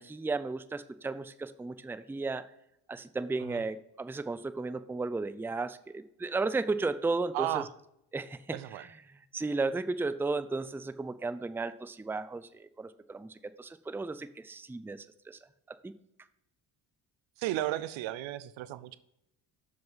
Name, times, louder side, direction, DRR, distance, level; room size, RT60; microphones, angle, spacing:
voice 1, 0.0-2.4 2.9-7.6 8.1-8.6 9.3-13.3 13.6-15.4 15.7-15.9, right 3 dB, 5° right, 13 dB, 0.5 m, -34 dB
voice 2, 7.3-7.7 8.5-8.9 17.4-19.0, right 14 dB, 85° right, 16 dB, 0.7 m, -34 dB
7.0 x 6.5 x 5.7 m, 0.79 s
supercardioid pair, 65°, 45 cm